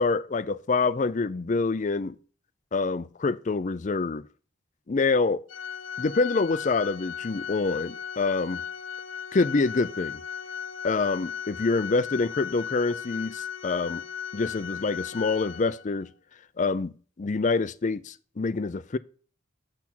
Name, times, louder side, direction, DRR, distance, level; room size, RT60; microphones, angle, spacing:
voice 1, 0.0-2.2 2.7-4.3 4.9-5.4 6.0-8.6 9.3-10.2 10.8-14.0 14.3-16.1 16.6-19.0, left 3 dB, 40° left, 0.4 m, -26 dB
Organ, 5.5-16.1, left 8 dB, 80° left, 0.8 m, -37 dB
7.4 x 6.0 x 4.2 m
head